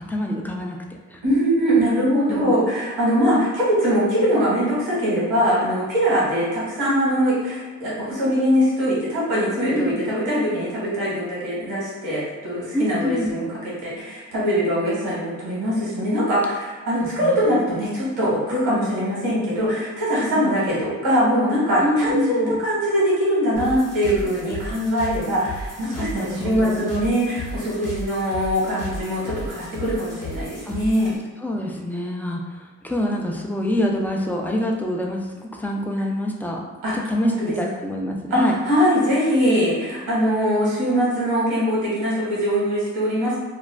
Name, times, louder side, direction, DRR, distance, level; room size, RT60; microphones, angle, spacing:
voice 1, 0.1-0.8 1.1-1.2 2.3-2.5 9.7-10.0 12.7-13.3 16.9-17.5 20.2-20.4 21.8-22.6 26.0-26.9 30.7-30.8 31.4-36.6 36.9-38.5, left 1 dB, 5° left, 0 dB, 0.3 m, -26 dB
voice 2, 1.2-31.1 36.8-36.9 37.2-37.5 38.3-43.4, equal, 90° right, -6 dB, 1.1 m, -22 dB
sound 1, 23.6-31.2, equal, 55° left, 0.7 m, -35 dB
2.4 x 2.1 x 3.2 m, 1.3 s
cardioid pair, 90°, 30 cm